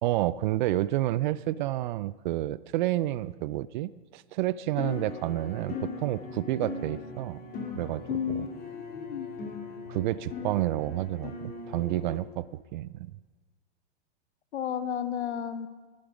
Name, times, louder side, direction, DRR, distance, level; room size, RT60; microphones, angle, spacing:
voice 1, 0.0-7.4 7.7-8.5 9.9-13.1, right 15 dB, 45° right, 19 dB, 0.4 m, -30 dB
sound 1, 4.8-12.2, left 4 dB, 25° left, 2.4 m, -39 dB
voice 2, 8.1-9.3 14.5-15.7, left 8 dB, 80° left, 11 dB, 1.2 m, -32 dB
18.5 x 8.8 x 5.0 m, 1.4 s
hypercardioid pair, 135°, 34 cm